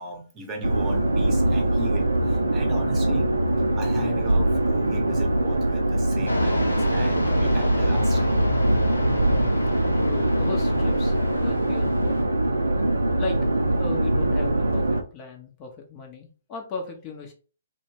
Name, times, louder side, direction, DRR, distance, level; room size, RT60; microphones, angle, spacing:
voice 1, 0.0-3.3 3.8-8.4, right 2 dB, 20° right, 0.7 m, -37 dB
sound 1, 0.6-15.0, right 1 dB, 80° right, 0.4 m, -23 dB
Fixed-wing aircraft airplane, 6.3-12.2, left 2 dB, 80° left, 0.4 m, -27 dB
voice 2, 10.0-12.3 13.2-13.4 13.8-17.3, left 4 dB, 25° left, 0.5 m, -37 dB
2.1 x 2.1 x 3.1 m
figure-of-eight pair, 125°, 0 cm